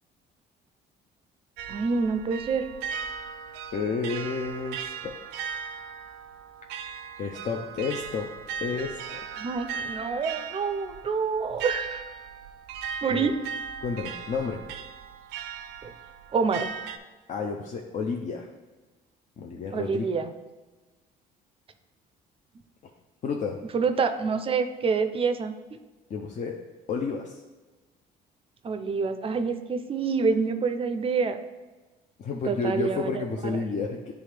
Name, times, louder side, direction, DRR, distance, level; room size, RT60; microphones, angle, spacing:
sound 1, 1.6-17.0, right 6 dB, 85° right, 0.5 m, -38 dB
voice 1, 1.7-2.7 9.4-12.0 13.0-13.3 15.8-15.9 16.3-16.7 19.7-20.3 23.7-25.5 28.6-31.4 32.4-33.6, right 5 dB, 35° right, 8 dB, 0.5 m, -27 dB
voice 2, 3.7-5.2 7.2-8.3 8.6-9.3 13.1-13.3 13.8-14.6 17.3-18.5 19.4-20.1 23.2-23.6 26.1-26.6 26.9-27.4 32.2-34.1, left 4 dB, 45° left, 1 dB, 0.6 m, -31 dB
9.2 x 3.5 x 3.3 m, 1.2 s
cardioid pair, 110°, 17 cm